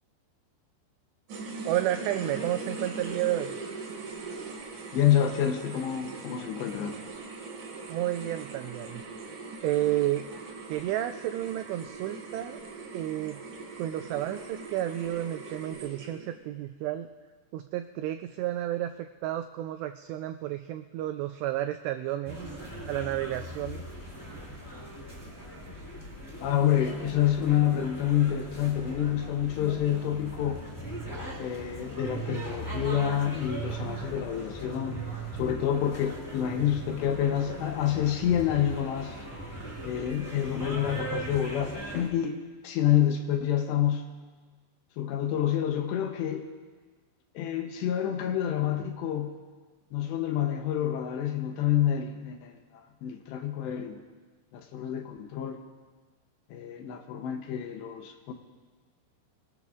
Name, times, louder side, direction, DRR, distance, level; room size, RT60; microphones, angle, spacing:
sound 1, 1.3-16.4, right 3 dB, 55° right, 2.9 m, -41 dB
voice 1, 1.7-3.5 7.9-9.0 9.6-10.3 10.7-12.6 12.9-13.4 13.8-17.1 17.5-22.5 22.9-23.8, right 13 dB, 90° right, 7 dB, 2.4 m, -31 dB
voice 2, 4.9-7.0 26.4-30.6 31.4-35.0 35.4-39.2 39.8-42.4 42.6-44.0 45.0-46.5 47.4-49.3 49.9-54.0 54.5-55.6 56.5-58.3, left 10 dB, 75° left, 5 dB, 2.9 m, -28 dB
sound 2, 22.2-42.1, right 2 dB, 10° left, 1.2 m, -39 dB
25.0 x 19.0 x 2.5 m, 1.4 s
omnidirectional pair, 5.4 m